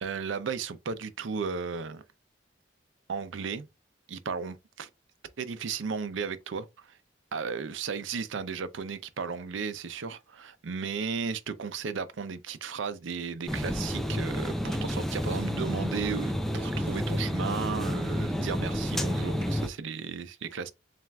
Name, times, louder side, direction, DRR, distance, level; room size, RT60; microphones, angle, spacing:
voice 1, 0.0-2.0 3.1-3.7 4.1-4.9 5.4-7.0 7.3-20.7, right 5 dB, 85° right, 0.5 m, -35 dB
sound 1, 13.5-19.7, equal, ahead, 0.4 m, -30 dB
7.3 x 2.5 x 2.2 m
head